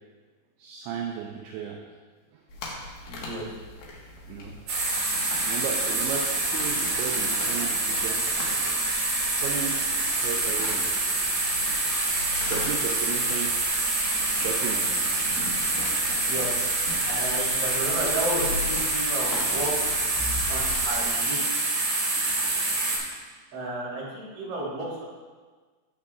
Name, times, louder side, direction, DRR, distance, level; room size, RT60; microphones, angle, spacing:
voice 1, 0.6-1.8 4.3-4.6 5.5-8.3 9.3-9.8 10.2-10.8 12.2-13.5 14.4-15.2 20.2-20.3, right 7 dB, 80° right, 0 dB, 2.8 m, -34 dB
sound 1, 2.5-21.1, left 2 dB, 65° left, 2.9 m, -40 dB
voice 2, 3.0-3.5 16.2-16.5 17.0-20.0 20.5-21.6 23.5-25.1, right 1 dB, 35° right, -7 dB, 3.5 m, -32 dB
sound 2, 4.7-23.0, right 2 dB, 60° right, 4.9 m, -26 dB
12.0 x 8.5 x 2.4 m, 1.4 s
omnidirectional pair, 5.4 m